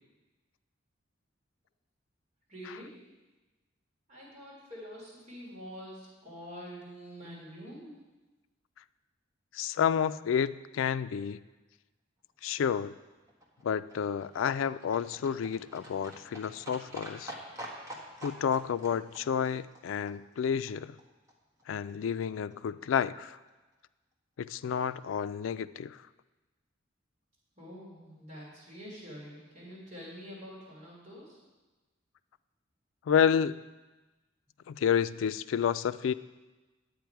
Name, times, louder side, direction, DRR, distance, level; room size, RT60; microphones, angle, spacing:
voice 1, 2.5-3.0 4.1-8.0 27.6-31.4, equal, 40° right, -5 dB, 3.0 m, -46 dB
voice 2, 9.5-11.4 12.4-12.9 13.6-17.3 18.2-21.0 21.7-23.4 24.4-26.0 33.1-33.6 34.7-36.1, left 7 dB, 85° left, 15 dB, 0.3 m, -30 dB
Livestock farm animals working animals, 13.1-21.0 21.3-21.4 21.6-21.7 21.9-22.0 22.2-22.3 22.5-22.6 22.8-22.9 23.1-23.2 23.5-23.6, equal, 15° right, 1.5 m, -47 dB
10.0 x 8.4 x 4.6 m, 1.2 s
head